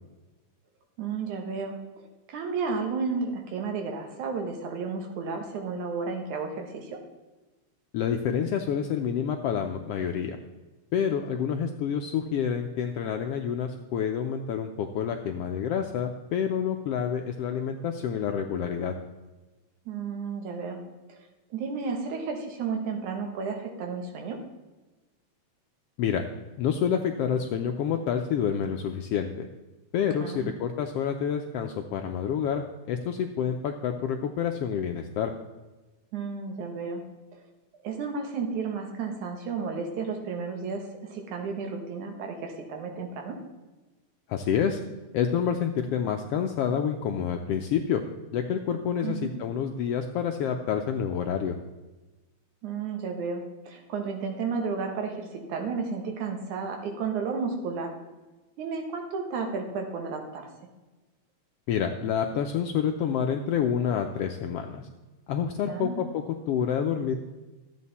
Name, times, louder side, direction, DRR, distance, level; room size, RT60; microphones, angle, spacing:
voice 1, 1.0-7.0 19.9-20.8 21.1-21.2 21.5-24.4 30.2-30.5 36.1-37.0 37.3-37.4 37.8-43.4 49.0-49.3 52.6-57.9 58.6-60.5 65.6-66.0, right 5 dB, 90° right, 3 dB, 2.9 m, -32 dB
voice 2, 7.9-10.4 10.9-18.9 26.0-26.2 26.6-29.5 29.9-35.3 44.3-44.8 45.1-48.0 48.3-51.6 61.7-64.8 65.3-67.2, left 8 dB, 80° left, 4 dB, 1.4 m, -28 dB
13.0 x 8.3 x 4.1 m, 1.2 s
omnidirectional pair, 3.4 m